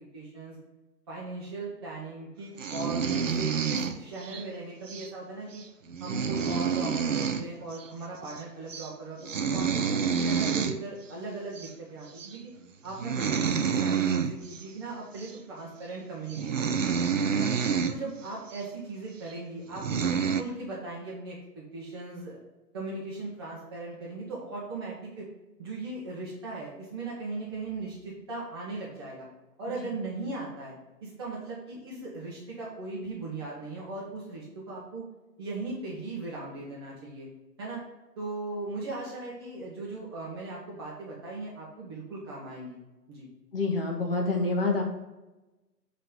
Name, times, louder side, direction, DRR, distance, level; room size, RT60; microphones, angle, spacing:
voice 1, 0.1-0.6 1.1-5.6 6.0-9.8 10.2-12.4 12.8-16.9 17.3-17.5 17.9-22.4 22.7-25.3 25.6-29.3 29.6-30.7 31.0-35.0 35.4-37.3 37.6-37.8 38.2-42.8 43.1-43.3, right 3 dB, 15° right, -6 dB, 1.0 m, -38 dB
sound 1, 2.6-4.4 4.9-5.1 5.5-5.6 5.9-7.5 7.7-7.9 8.1-8.4 8.7-8.9 9.2-10.8 11.6-11.7 12.2-12.4 12.9-14.6 15.2-15.3 15.9-16.0 16.3-18.0 18.5-18.6 19.3-19.4 19.7-20.4, right 6 dB, 50° right, 0.5 m, -28 dB
voice 2, 43.5-44.8, left 3 dB, 35° left, 1 dB, 1.1 m, -27 dB
8.2 x 3.2 x 5.2 m, 1.1 s
figure-of-eight pair, 140°, 49 cm